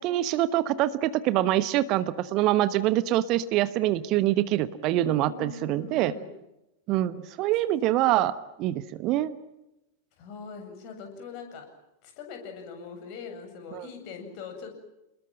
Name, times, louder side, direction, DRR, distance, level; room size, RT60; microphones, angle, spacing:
voice 1, 0.0-6.1 6.9-9.4 13.7-13.9, right 14 dB, 40° right, 15 dB, 1.1 m, -25 dB
voice 2, 4.6-6.3 10.2-11.7 12.0-14.7, left 5 dB, 45° left, 5 dB, 7.8 m, -42 dB
30.0 x 21.0 x 7.8 m, 0.93 s
figure-of-eight pair, 90°, 0 cm